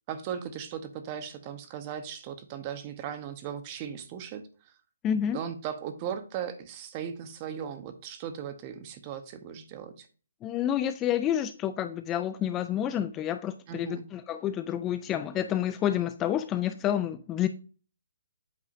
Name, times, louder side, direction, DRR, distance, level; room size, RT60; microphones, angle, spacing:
voice 1, 0.1-4.7 5.3-10.1 13.7-14.1, right 8 dB, 30° right, 9 dB, 0.9 m, -37 dB
voice 2, 5.0-5.4 10.4-17.5, left 10 dB, 15° left, 10 dB, 0.3 m, -29 dB
8.4 x 4.8 x 2.6 m, 0.38 s
hypercardioid pair, 150°, 0 cm